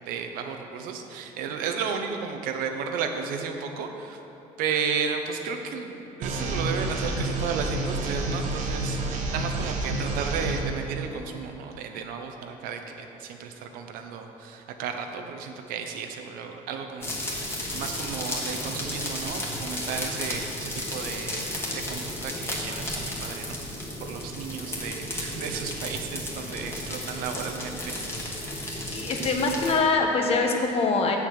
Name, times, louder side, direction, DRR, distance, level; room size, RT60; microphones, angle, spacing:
voice 1, 0.1-4.2 4.6-28.2, right 6 dB, 75° right, 5 dB, 0.9 m, -33 dB
sound 1, 6.2-10.6, right 2 dB, 55° right, 1.2 m, -29 dB
sound 2, 17.0-29.8, left 1 dB, 15° left, 1.7 m, -33 dB
voice 2, 28.9-31.2, left 3 dB, 45° left, 2 dB, 1.1 m, -24 dB
7.5 x 7.1 x 6.5 m, 2.9 s
cardioid pair, 125°, 15 cm